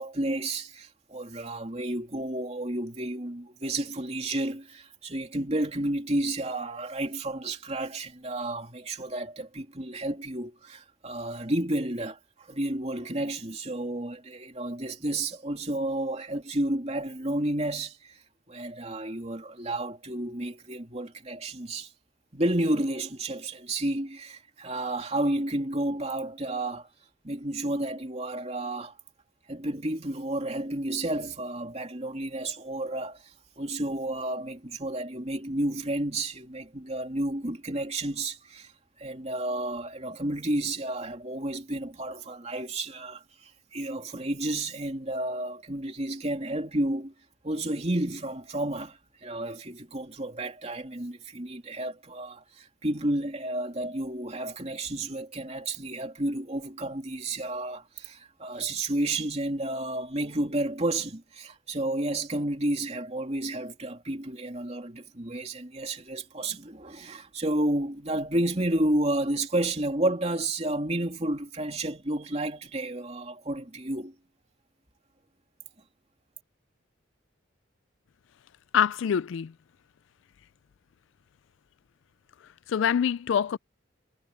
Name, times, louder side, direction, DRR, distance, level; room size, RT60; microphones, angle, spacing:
voice 1, 0.0-18.2 18.5-21.9 22.3-26.9 27.2-28.9 29.5-38.7 39.0-47.1 47.4-74.1, right 1 dB, 30° right, 2.9 m, -31 dB
voice 2, 78.7-79.5 82.7-83.6, left 8 dB, 65° left, 0.3 m, -25 dB
head